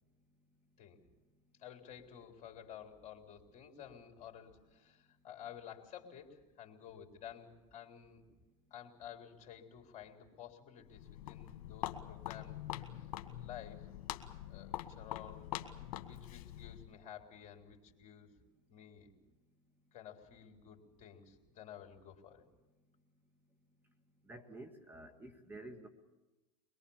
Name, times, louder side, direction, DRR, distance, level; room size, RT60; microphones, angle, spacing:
voice 1, 1.6-8.2 8.7-12.6 13.0-13.9 14.5-15.5 15.8-18.3 18.7-19.1 19.9-22.4, left 9 dB, 40° left, 4 dB, 3.8 m, -53 dB
Walk footsteps, 10.8-17.0, left 13 dB, 65° left, 1.9 m, -44 dB
voice 2, 24.3-25.9, right 1 dB, 10° right, 4 dB, 1.9 m, -50 dB
23.0 x 22.0 x 7.3 m, 1.1 s
hypercardioid pair, 95°, 19 cm